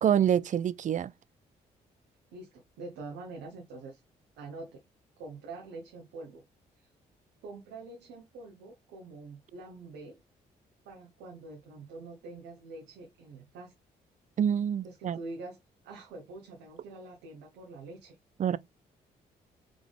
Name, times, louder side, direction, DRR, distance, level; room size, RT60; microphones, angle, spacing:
voice 1, 0.0-1.1 14.4-15.2 18.4-18.6, right 9 dB, 45° right, 0.4 m, -26 dB
voice 2, 2.3-4.0 4.4-4.8 5.2-6.4 6.8-6.9 7.4-10.2 10.8-13.7 14.8-15.6 15.8-18.2, right 3 dB, 85° right, 1.0 m, -45 dB
3.7 x 3.5 x 3.5 m
supercardioid pair, 55°, 18 cm